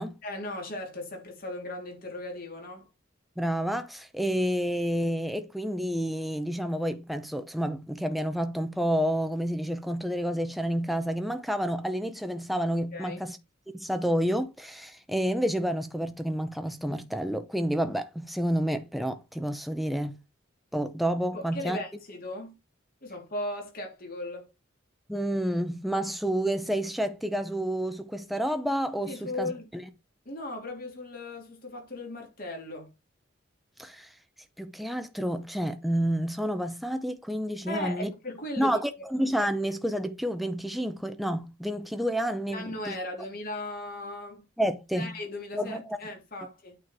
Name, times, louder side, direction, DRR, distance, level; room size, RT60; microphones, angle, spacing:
voice 1, 0.2-2.9 12.9-13.2 21.3-22.5 23.0-24.5 29.1-29.7 30.2-32.9 37.7-38.8 42.5-44.4 44.9-46.8, left 1 dB, 50° left, 3.3 m, -37 dB
voice 2, 3.4-13.4 13.7-20.2 20.7-21.8 25.1-29.8 33.8-34.1 34.6-38.1 38.6-43.0 44.6-45.1 45.5-46.0, equal, ahead, 0.7 m, -29 dB
8.8 x 4.6 x 4.8 m
head